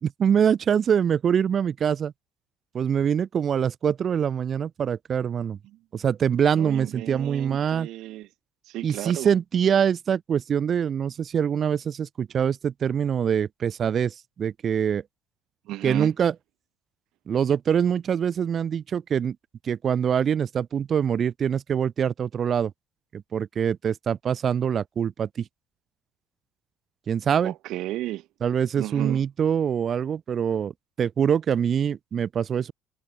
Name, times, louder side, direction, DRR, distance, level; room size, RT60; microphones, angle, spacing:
voice 1, 0.0-2.1 2.7-5.6 5.9-7.9 8.8-15.0 15.8-16.3 17.3-19.4 19.6-22.7 23.1-25.5 27.1-27.5 28.4-30.7 31.0-32.7, right 8 dB, 35° right, 6.9 m, -24 dB
voice 2, 6.5-8.3 8.7-9.3 15.7-16.1 27.4-28.3 28.7-29.2, right 16 dB, 65° right, 6.4 m, -33 dB
cardioid pair, 130°, 0 cm